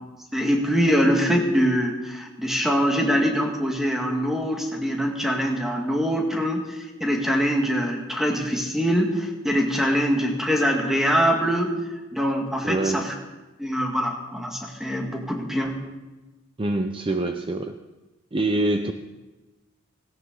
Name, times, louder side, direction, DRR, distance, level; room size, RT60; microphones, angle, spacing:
voice 1, 0.3-11.7 12.1-13.1 13.6-15.8, equal, ahead, 1 dB, 2.0 m, -23 dB
voice 2, 12.6-13.1 16.6-17.8 18.3-18.9, right 2 dB, 25° right, 7 dB, 0.6 m, -25 dB
17.5 x 17.0 x 3.9 m, 1.1 s
head